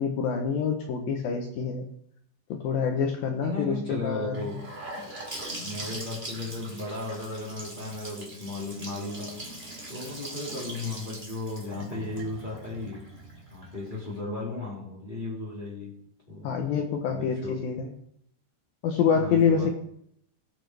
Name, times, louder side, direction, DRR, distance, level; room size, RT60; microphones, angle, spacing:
voice 1, 0.0-1.9 2.5-4.4 16.4-17.9 18.8-19.7, left 6 dB, 70° left, 3 dB, 2.3 m, -26 dB
voice 2, 3.4-4.6 4.9-5.1 5.6-9.4 9.9-13.1 13.5-16.0 16.3-16.5 17.1-17.7 19.0-19.7, left 2 dB, 10° left, -6 dB, 3.2 m, -35 dB
Gurgling / Sink (filling or washing) / Bathtub (filling or washing), 4.3-14.2, right 1 dB, 20° right, 2.1 m, -41 dB
19.5 x 8.3 x 3.4 m, 0.69 s
omnidirectional pair, 5.0 m